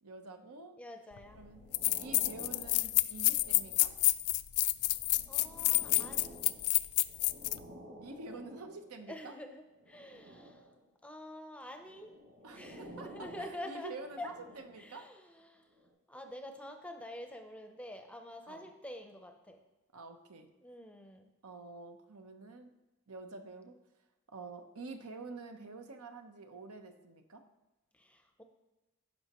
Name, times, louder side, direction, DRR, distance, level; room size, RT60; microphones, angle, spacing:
voice 1, 0.0-0.8 1.3-1.6 2.0-3.9 8.0-9.3 12.4-12.7 13.0-15.1 18.5-18.7 19.9-20.5 21.4-22.7 23.1-23.8 24.3-27.5, right 3 dB, 80° right, 6 dB, 0.9 m, -47 dB
voice 2, 0.8-1.4 5.3-6.4 9.1-10.7 11.0-12.1 12.5-14.3 14.8-15.7 16.1-19.6 20.6-21.3 27.9-28.4, left 1 dB, 5° left, 5 dB, 0.6 m, -47 dB
sound 1, 1.0-4.1 4.8-9.0 9.7-10.9 11.7-15.0 15.7-15.9, equal, 45° right, 2.3 m, -53 dB
sound 2, 1.2-1.3 1.7-7.6, left 19 dB, 80° left, 0.3 m, -29 dB
16.0 x 5.6 x 3.0 m, 1.1 s
head